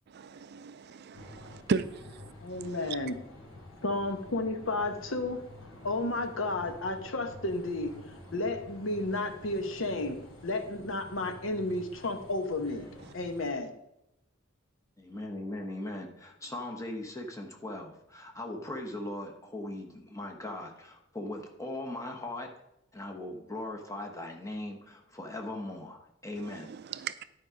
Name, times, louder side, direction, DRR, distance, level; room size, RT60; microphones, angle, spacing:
voice 1, 0.1-1.9 26.7-27.2, right 5 dB, 50° right, 0.4 m, -34 dB
sound 1, 1.1-13.5, left 1 dB, 85° left, 2.8 m, -49 dB
voice 2, 2.4-3.2 3.8-5.4 5.8-7.9 8.3-12.9 13.1-13.7, left 2 dB, 70° left, 1.0 m, -32 dB
voice 3, 15.0-22.5 22.9-26.7, left 1 dB, 15° left, 1.2 m, -39 dB
11.0 x 4.8 x 5.1 m
head